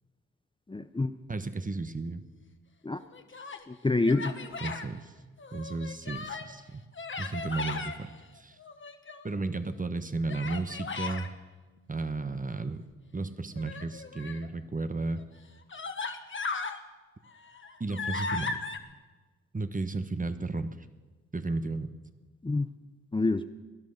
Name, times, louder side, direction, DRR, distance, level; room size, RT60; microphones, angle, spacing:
voice 1, 0.7-1.1 2.8-3.0 3.7-4.3 22.4-22.7 23.1-23.4, left 3 dB, 15° left, 10 dB, 0.7 m, -27 dB
voice 2, 1.3-2.2 4.6-5.1 5.5-6.8 7.2-8.1 8.3-8.6 9.2-11.3 11.9-12.8 13.1-15.2 17.8-18.6 19.5-20.7 21.3-21.9, right 3 dB, 25° right, 11 dB, 1.1 m, -33 dB
Human voice, 3.0-3.6 4.1-4.9 5.4-6.5 6.9-8.0 8.6-9.4 10.3-11.3 13.5-14.5 15.2-15.3 15.7-16.8 17.3-18.8, left 4 dB, 40° left, 1.4 m, -37 dB
17.0 x 10.5 x 6.6 m, 1.3 s
cardioid pair, 50°, 30 cm